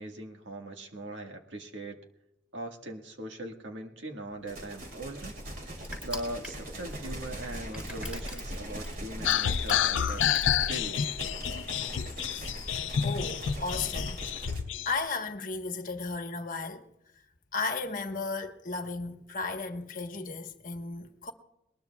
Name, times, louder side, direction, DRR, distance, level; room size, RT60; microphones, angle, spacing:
voice 1, 0.0-2.0 2.5-5.4 5.6-5.7 6.0-11.0, right 1 dB, 80° right, 1.6 m, -40 dB
Crushing, 4.3-11.1, left 1 dB, 5° right, 3.4 m, -46 dB
sound 1, 4.5-14.6, equal, 50° right, 3.3 m, -39 dB
sound 2, 9.2-14.9, left 9 dB, 85° left, 0.4 m, -29 dB
voice 2, 13.0-14.2 14.8-16.8 17.1-17.2 17.5-21.3, left 4 dB, 45° left, 1.2 m, -35 dB
21.5 x 20.0 x 2.3 m
head